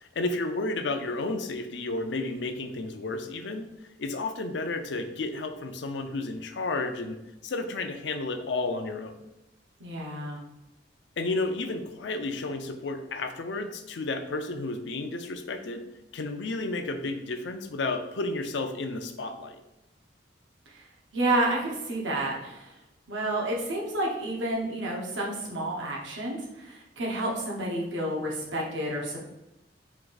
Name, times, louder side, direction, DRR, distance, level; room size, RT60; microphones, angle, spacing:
voice 1, 0.0-9.1 11.2-15.8 16.1-19.6, left 2 dB, 70° left, 7 dB, 0.5 m, -32 dB
voice 2, 9.8-10.4 20.7-20.8 21.1-22.7 23.1-29.2, right 1 dB, 85° right, -2 dB, 1.1 m, -30 dB
4.6 x 2.6 x 3.9 m, 0.92 s
head